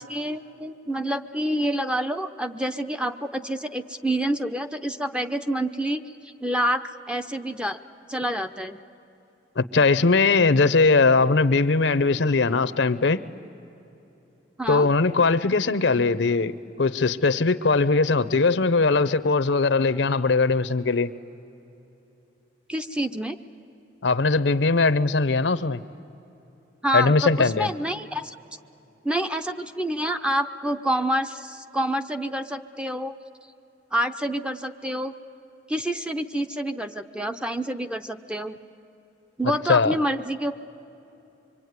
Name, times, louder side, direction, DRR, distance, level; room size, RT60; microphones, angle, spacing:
voice 1, 0.0-7.8 8.1-8.8 14.6-14.9 22.7-23.4 26.8-28.4 29.0-33.1 33.9-35.1 35.7-38.6 39.4-40.5, equal, 5° right, 8 dB, 0.7 m, -27 dB
voice 2, 9.6-13.2 14.7-16.5 16.8-21.1 24.0-25.8 26.9-27.7 39.7-39.9, left 3 dB, 70° left, 14 dB, 0.7 m, -20 dB
25.0 x 24.0 x 9.5 m, 2.9 s
head